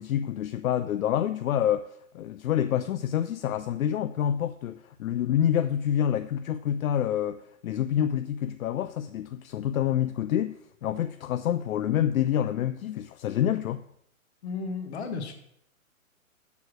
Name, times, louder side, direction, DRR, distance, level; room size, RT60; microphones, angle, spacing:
voice 1, 0.0-1.9 2.1-10.6 10.8-13.8, left 10 dB, 75° left, 0.5 m, -27 dB
voice 2, 14.4-15.3, left 4 dB, 50° left, 1.3 m, -33 dB
7.0 x 4.7 x 6.1 m
hypercardioid pair, 155°, 42 cm